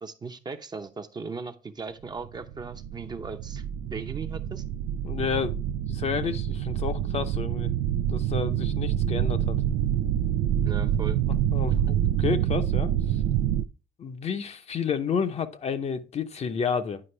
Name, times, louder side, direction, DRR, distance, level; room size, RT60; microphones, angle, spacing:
voice 1, 0.0-4.6 10.7-11.2, right 4 dB, 25° right, 0.7 m, -38 dB
sound 1, 2.2-13.6, right 10 dB, 90° right, 0.4 m, -27 dB
voice 2, 5.0-5.6 5.9-7.7 8.1-9.6 11.5-13.2 14.0-17.0, left 6 dB, 40° left, 0.7 m, -30 dB
9.7 x 5.1 x 3.2 m
cardioid pair, 110°, 17 cm